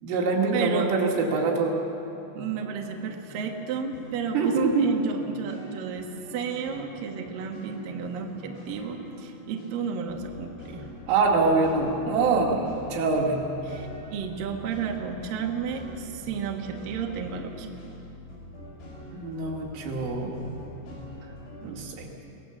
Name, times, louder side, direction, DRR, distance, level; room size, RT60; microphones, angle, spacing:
voice 1, 0.0-1.8 4.3-4.9 11.1-13.4 19.1-20.3 21.6-22.1, right 4 dB, 85° right, 0 dB, 4.9 m, -24 dB
voice 2, 0.5-1.0 2.4-10.8 13.7-17.7, right 6 dB, 60° right, 2 dB, 2.7 m, -33 dB
sound 1, 2.5-9.8 10.1-21.9, equal, 75° left, 7.9 m, -44 dB
24.5 x 18.5 x 7.4 m, 2.8 s
omnidirectional pair, 5.5 m